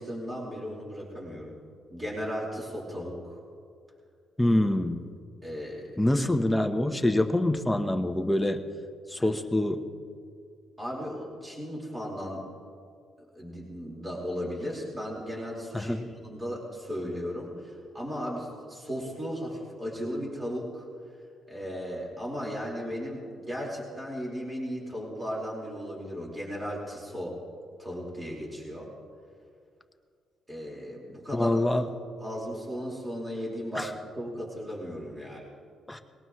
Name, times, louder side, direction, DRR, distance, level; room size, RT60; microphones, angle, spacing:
voice 1, 0.0-1.5 1.9-3.4 5.4-6.1 9.2-9.3 10.8-12.5 13.3-16.0 16.2-20.9 21.5-27.4 27.8-28.9 30.5-31.9 32.2-35.4, equal, 15° right, -3 dB, 4.7 m, -36 dB
voice 2, 4.4-5.0 6.0-8.6 9.1-9.8 15.7-16.0 31.3-31.8 33.8-33.9 35.9-36.0, left 1 dB, 5° left, 5 dB, 1.1 m, -25 dB
20.5 x 18.5 x 3.2 m, 2.2 s
cardioid pair, 90°, 0 cm